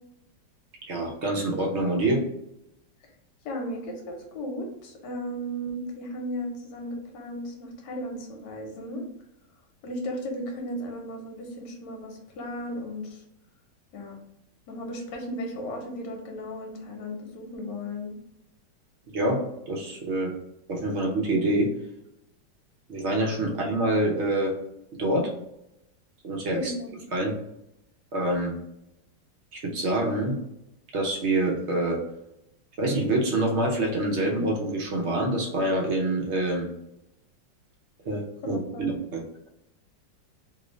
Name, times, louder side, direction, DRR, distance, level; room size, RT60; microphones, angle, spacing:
voice 1, 0.8-2.2 19.1-19.4 19.7-20.3 20.7-21.7 22.9-24.5 25.0-25.3 26.2-26.7 27.1-27.3 28.1-28.5 29.5-30.4 30.9-32.0 32.8-36.7 38.0-39.2, right 1 dB, 60° right, -1 dB, 0.7 m, -26 dB
voice 2, 3.4-9.0 9.8-13.2 13.9-14.2 14.7-18.2 26.5-27.0 38.4-38.9, equal, 70° left, 2 dB, 1.4 m, -35 dB
3.0 x 2.6 x 3.1 m, 0.83 s
omnidirectional pair, 2.0 m